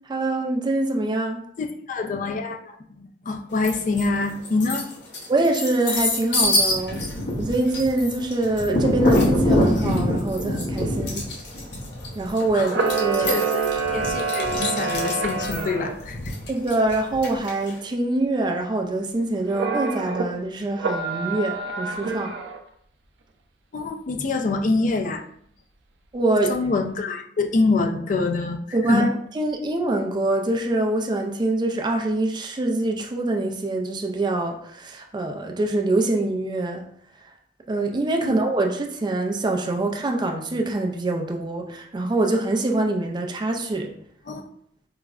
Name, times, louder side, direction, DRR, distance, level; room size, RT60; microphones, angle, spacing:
voice 1, 0.1-1.4 5.3-7.0 7.4-11.3 12.1-13.3 16.5-22.3 26.1-26.6 28.7-29.1 29.3-36.8 37.7-43.9, right 2 dB, 25° right, 3 dB, 0.3 m, -24 dB
voice 2, 1.6-4.9 12.5-12.8 13.2-16.3 23.7-25.2 26.5-29.1 38.2-38.4 44.3-44.4, left 3 dB, 45° left, 3 dB, 0.4 m, -25 dB
sound 1, 3.6-4.1 4.4-17.7, left 1 dB, 75° left, 0.8 m, -25 dB
Camera, 12.6-15.9 19.5-20.2 20.8-22.6, right 4 dB, 85° right, 0.4 m, -26 dB
4.6 x 2.0 x 2.3 m, 0.67 s
head